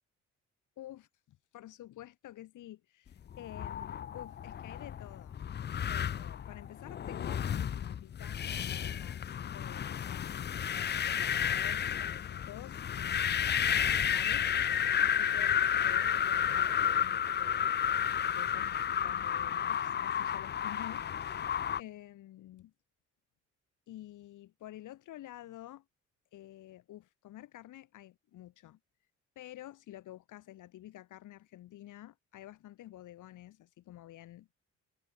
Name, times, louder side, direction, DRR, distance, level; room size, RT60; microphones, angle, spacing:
voice 1, 0.8-5.4 5.9-22.7 23.9-25.8 26.3-28.8 29.4-34.5, left 14 dB, 80° left, 4.2 m, -50 dB
sound 1, 3.3-21.8, left 9 dB, 35° left, 0.5 m, -32 dB
cardioid pair, 90°, 30 cm